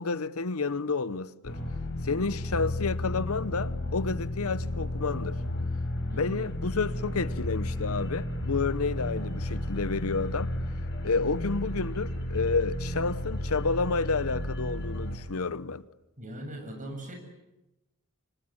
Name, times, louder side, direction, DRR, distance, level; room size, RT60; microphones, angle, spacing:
voice 1, 0.0-1.6 2.0-5.3 6.2-10.5 11.0-15.8, left 4 dB, 80° left, 0.9 m, -30 dB
sound 1, 1.4-15.2, left 1 dB, 55° left, 5.6 m, -33 dB
voice 2, 6.1-6.5 16.2-17.1, right 1 dB, 35° right, 7.3 m, -40 dB
27.0 x 25.0 x 8.7 m
head